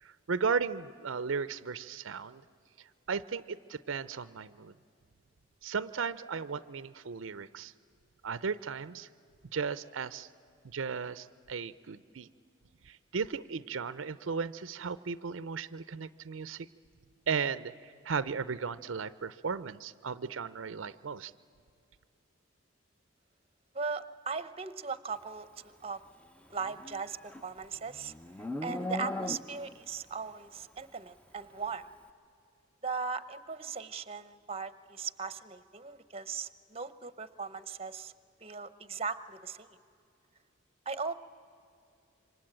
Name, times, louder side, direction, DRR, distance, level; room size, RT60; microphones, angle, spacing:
voice 1, 0.0-2.4 3.1-4.7 5.6-7.7 8.2-9.1 9.5-10.3 10.6-12.3 12.8-16.7 17.3-21.3, right 5 dB, 75° right, 15 dB, 0.6 m, -35 dB
voice 2, 23.7-26.0 26.5-28.1 28.6-31.9 32.8-38.1 38.4-39.8 40.9-41.1, right 5 dB, 30° right, 14 dB, 0.8 m, -38 dB
Livestock farm animals working animals, 26.6-29.8, left 1 dB, 5° left, 0.6 m, -38 dB
27.5 x 24.5 x 8.8 m, 2.5 s
head